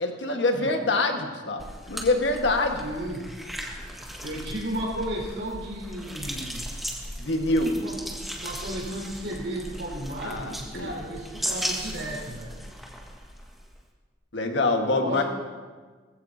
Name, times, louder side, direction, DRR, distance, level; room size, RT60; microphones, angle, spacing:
voice 1, 0.0-2.8 7.2-7.8 10.2-10.9 14.3-15.2, left 2 dB, 85° left, 3 dB, 1.5 m, -25 dB
sound 1, 1.6-13.8, equal, ahead, 1.6 m, -37 dB
voice 2, 2.8-3.3 4.2-6.7 7.6-12.6 14.8-15.2, right 1 dB, 75° right, -4 dB, 4.6 m, -34 dB
19.5 x 15.0 x 2.8 m, 1.5 s
head